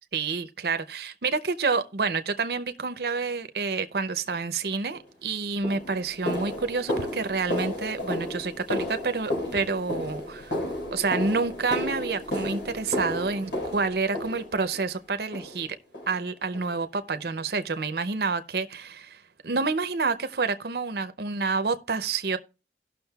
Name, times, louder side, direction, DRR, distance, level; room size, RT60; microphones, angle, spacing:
voice 1, 0.1-15.7 16.1-22.4, right 4 dB, 60° right, 0.6 m, -28 dB
sound 1, 4.9-5.1 5.6-14.8 15.3-15.7 15.9-16.2 16.5-16.7 17.2-17.3 17.8-17.9, left 1 dB, 90° left, 4.6 m, -32 dB
17.5 x 6.1 x 2.3 m
head